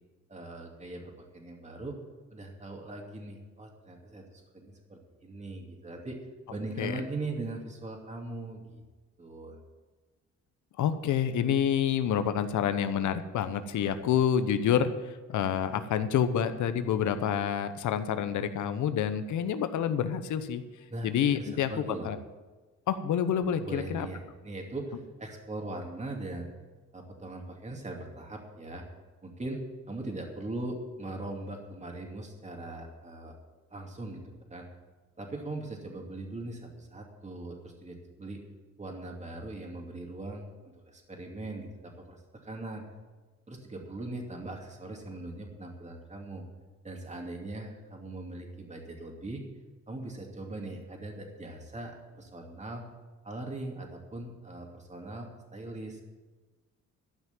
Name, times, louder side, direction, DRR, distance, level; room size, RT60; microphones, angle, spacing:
voice 1, 0.3-2.0 2.3-6.2 6.5-8.8 9.2-9.6 20.9-22.1 23.6-26.5 26.9-28.8 29.2-33.4 33.7-34.2 34.5-34.7 35.2-38.4 38.8-40.5 40.8-42.8 43.5-46.4 46.8-49.5 49.9-52.8 53.2-56.0, right 2 dB, 25° right, 1 dB, 2.6 m, -40 dB
voice 2, 10.8-20.6 21.0-22.2 22.9-24.1, left 8 dB, 75° left, 10 dB, 1.0 m, -28 dB
13.0 x 5.9 x 9.2 m, 1.3 s
cardioid pair, 90°, 30 cm